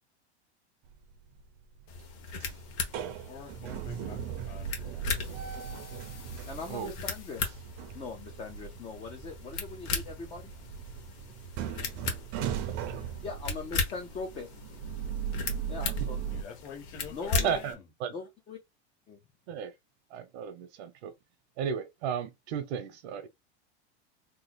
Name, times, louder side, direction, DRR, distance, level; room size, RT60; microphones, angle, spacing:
sound 1, 0.9-1.4 1.8-16.4, right 8 dB, 45° right, 0.6 m, -39 dB
sound 2, 1.9-17.7, left 4 dB, 45° left, 1.1 m, -38 dB
voice 1, 3.2-5.1 16.3-17.9, left 5 dB, 75° left, 1.5 m, -47 dB
sound 3, 5.2-7.6, left 7 dB, 90° left, 1.3 m, -53 dB
voice 2, 6.5-7.5 7.9-10.5 13.2-14.5 15.7-16.2 17.1-17.6 18.1-18.6 19.1-19.2, left 4 dB, 20° left, 0.4 m, -40 dB
voice 3, 12.4-13.1 17.4-18.1 19.5-19.7 20.1-21.1 21.6-23.3, right 7 dB, 70° right, 0.9 m, -35 dB
3.0 x 2.0 x 3.9 m
supercardioid pair, 145°, 34 cm